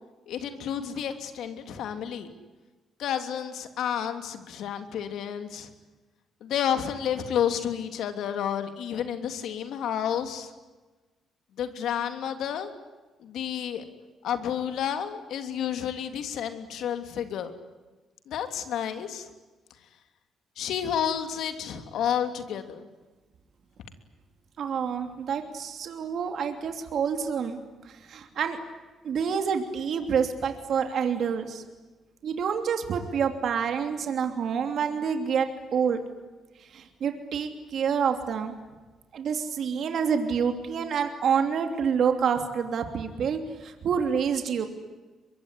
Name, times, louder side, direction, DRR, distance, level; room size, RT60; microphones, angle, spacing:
voice 1, 0.3-2.3 3.0-5.7 6.4-10.5 11.6-12.7 13.2-13.8 14.2-17.5 18.3-19.3 20.6-22.9, left 9 dB, 75° left, 7 dB, 3.1 m, -30 dB
voice 2, 24.6-27.6 27.8-28.6 29.0-31.6 32.2-36.0 36.7-38.6 39.1-44.7, right 7 dB, 65° right, 6 dB, 3.0 m, -27 dB
23.5 x 23.5 x 10.0 m, 1.2 s
cardioid pair, 90°, 0 cm